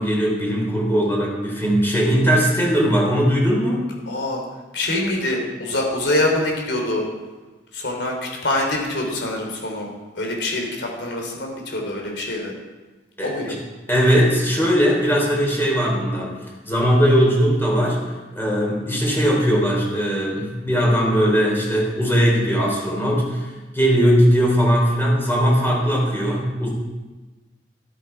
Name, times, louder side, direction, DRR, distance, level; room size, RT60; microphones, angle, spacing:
voice 1, 0.0-3.8 13.2-13.3 13.9-16.3 16.7-18.0 18.4-26.7, equal, 15° left, -2 dB, 4.0 m, -19 dB
voice 2, 4.1-4.4 4.7-7.0 7.7-9.9 10.1-12.5 13.2-13.6, left 1 dB, 85° left, 1 dB, 3.3 m, -24 dB
13.0 x 12.5 x 4.7 m, 1.2 s
head